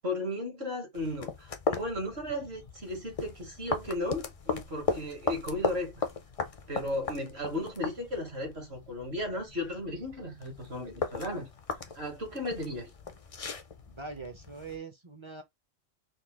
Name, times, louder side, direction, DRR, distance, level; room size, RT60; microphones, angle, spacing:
voice 1, 0.0-6.0 6.7-11.5 11.9-12.9, left 1 dB, 60° right, 1.7 m, -35 dB
sound 1, 0.9-14.8, left 4 dB, 45° left, 0.5 m, -37 dB
voice 2, 13.9-15.4, right 4 dB, 30° right, 0.6 m, -42 dB
3.9 x 2.4 x 3.5 m
omnidirectional pair, 1.2 m